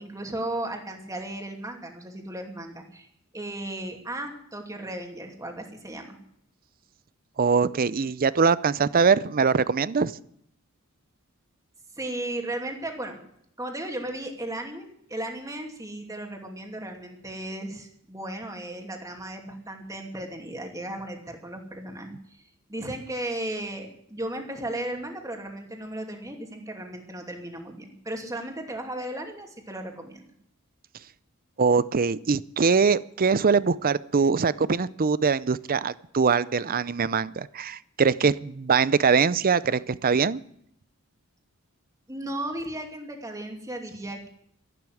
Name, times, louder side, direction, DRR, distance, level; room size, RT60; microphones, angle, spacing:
voice 1, 0.0-3.1 3.3-6.2 11.9-13.2 13.6-22.4 22.7-30.2 42.1-44.3, right 1 dB, 15° right, 2 dB, 2.6 m, -35 dB
voice 2, 7.4-10.1 31.6-40.4, right 5 dB, 40° right, 18 dB, 0.5 m, -22 dB
13.0 x 12.0 x 7.8 m, 0.69 s
head